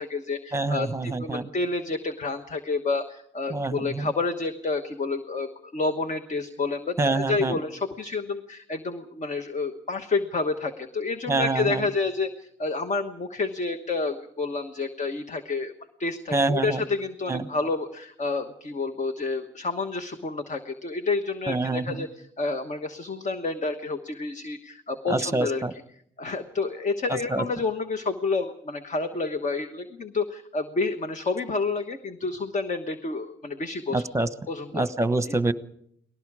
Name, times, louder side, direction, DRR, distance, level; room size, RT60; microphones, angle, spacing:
voice 1, 0.0-15.7 16.0-25.8 26.2-34.1 34.5-34.9 35.3-35.4, left 3 dB, 40° left, 7 dB, 1.2 m, -29 dB
voice 2, 0.5-1.5 3.5-4.1 7.0-7.5 11.3-11.9 16.3-16.8 17.3-17.5 21.5-22.0 25.1-25.7 27.1-27.4 33.9-34.3 34.7-35.5, right 2 dB, 15° right, 11 dB, 1.0 m, -26 dB
30.0 x 20.0 x 4.9 m, 0.69 s
wide cardioid pair, 150°, 19 cm